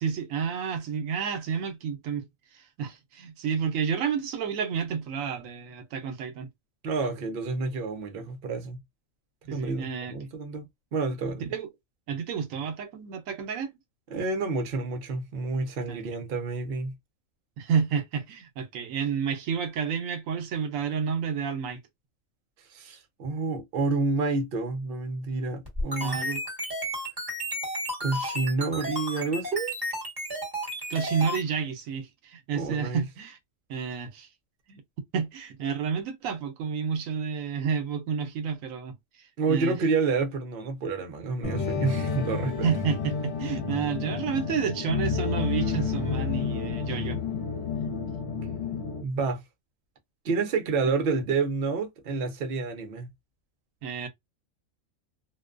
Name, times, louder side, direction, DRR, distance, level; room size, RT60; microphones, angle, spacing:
voice 1, 0.0-2.2 2.8-6.5 9.5-10.1 11.4-11.7 12.1-13.7 15.9-16.0 17.6-21.8 26.0-26.4 30.9-33.4 33.7-34.3 34.7-34.8 35.1-38.9 39.5-39.8 42.6-47.2 53.8-54.1, right 6 dB, 80° right, 1.0 m, -30 dB
voice 2, 6.8-8.8 9.5-10.6 10.9-11.5 14.1-16.9 22.7-26.3 28.0-29.8 32.5-33.1 39.4-42.7 49.0-49.4 50.2-53.1, right 4 dB, 55° right, 0.8 m, -29 dB
sound 1, 25.7-31.4, equal, 20° right, 1.2 m, -32 dB
sound 2, 41.4-49.0, left 5 dB, 60° left, 1.0 m, -30 dB
2.5 x 2.2 x 2.3 m
omnidirectional pair, 1.4 m